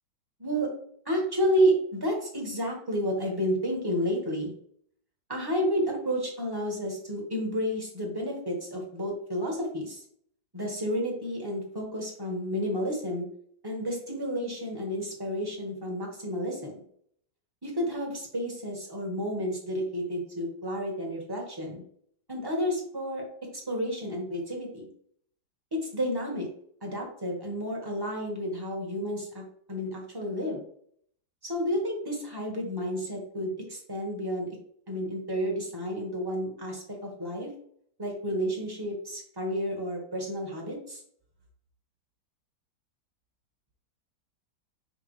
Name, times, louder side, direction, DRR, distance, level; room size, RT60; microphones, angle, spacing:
voice 1, 1.0-4.5 5.3-10.0 10.5-13.3 13.6-16.8 17.6-21.8 22.3-23.2 23.7-24.9 25.7-26.5 26.8-29.4 29.7-30.6 31.4-34.6 34.9-37.5 38.0-41.0, equal, 15° right, -1 dB, 1.6 m, -31 dB
5.5 x 5.4 x 3.2 m, 0.63 s
omnidirectional pair, 2.0 m